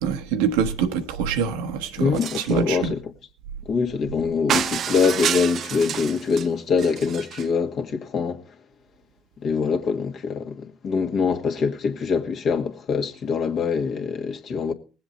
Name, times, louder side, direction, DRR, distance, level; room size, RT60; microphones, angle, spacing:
voice 1, 0.0-2.9, right 6 dB, 80° right, 1.1 m, -25 dB
voice 2, 2.0-3.0 3.7-8.4 9.4-14.7, left 5 dB, 55° left, 1.8 m, -24 dB
sound 1, 2.1-2.6 4.5-6.5 6.8-7.5, right 9 dB, 55° right, 0.5 m, -28 dB
20.0 x 7.8 x 4.2 m
hypercardioid pair, 65°, 0 cm